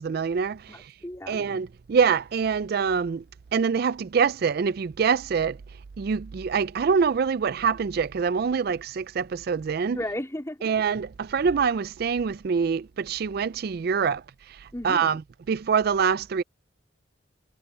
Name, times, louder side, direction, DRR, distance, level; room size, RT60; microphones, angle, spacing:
voice 1, 0.0-0.9 1.3-3.2 3.5-5.6 6.0-10.0 10.6-14.2 14.6-15.2 15.5-16.4, right 6 dB, 55° right, 0.4 m, -25 dB
voice 2, 0.7-1.4 9.9-10.6 14.7-15.1, left 1 dB, 15° left, 3.4 m, -34 dB
head